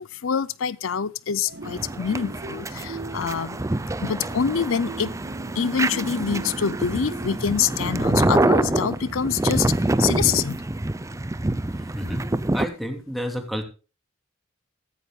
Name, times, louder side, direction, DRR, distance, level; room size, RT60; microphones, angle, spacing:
voice 1, 0.0-3.6 4.0-5.1 5.6-9.7 10.0-10.6, left 7 dB, 80° left, 0.5 m, -25 dB
sound 1, 1.4-9.5, right 3 dB, 55° right, 0.8 m, -41 dB
sound 2, 1.6-12.6, right 2 dB, 15° right, 0.6 m, -26 dB
voice 2, 11.9-12.3 12.5-13.6, equal, ahead, 3.1 m, -30 dB
15.5 x 14.5 x 2.4 m
head